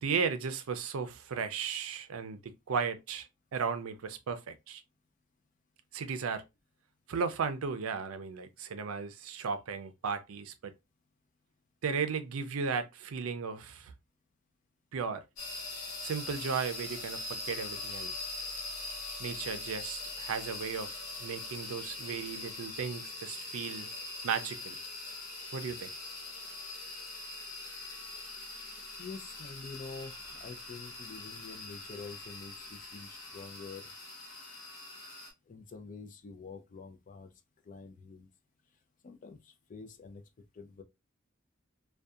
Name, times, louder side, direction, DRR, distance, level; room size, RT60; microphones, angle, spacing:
voice 1, 0.0-4.8 5.9-6.4 7.1-10.7 11.8-13.9 14.9-15.2 16.0-18.3 19.2-23.9 24.2-24.8 25.5-25.9, right 5 dB, 85° right, 0.4 m, -35 dB
sound 1, 15.4-35.3, left 2 dB, 80° left, 0.9 m, -42 dB
voice 2, 29.0-33.9 35.5-37.3 37.6-38.3 39.0-40.2 40.5-40.8, left 4 dB, 40° left, 0.4 m, -47 dB
2.6 x 2.2 x 2.3 m
head